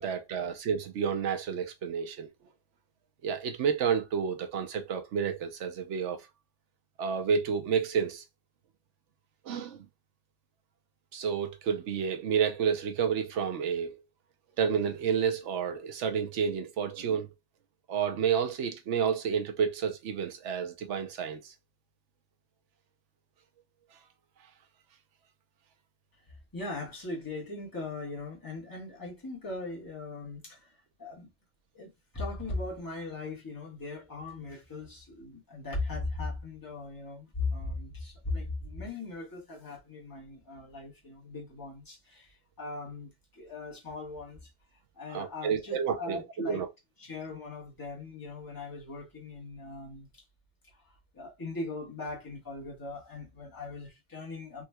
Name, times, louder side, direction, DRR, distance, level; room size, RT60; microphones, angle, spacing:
voice 1, 0.0-2.3 3.2-6.2 7.0-8.2 9.5-9.8 11.1-14.0 14.6-17.3 17.9-21.5 45.1-46.7, right 7 dB, 90° right, 1.0 m, -30 dB
voice 2, 26.5-30.7 31.0-31.3 31.7-44.5 44.9-46.6 47.0-50.2 50.8-54.6, left 3 dB, 20° left, 1.3 m, -39 dB
3.5 x 3.0 x 2.2 m
omnidirectional pair, 1.2 m